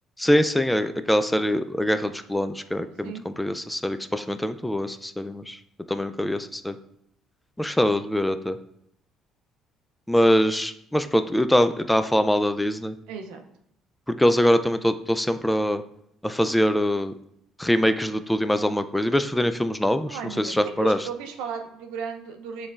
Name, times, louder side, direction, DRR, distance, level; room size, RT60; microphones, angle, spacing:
voice 1, 0.2-5.6 5.9-6.8 7.6-8.6 10.1-12.9 14.1-15.8 16.2-17.1 17.6-21.0, equal, 5° left, 10 dB, 0.3 m, -23 dB
voice 2, 13.1-13.5 20.1-22.7, right 6 dB, 80° right, 5 dB, 0.5 m, -35 dB
6.9 x 3.2 x 2.4 m, 0.73 s
supercardioid pair, 65°, 0 cm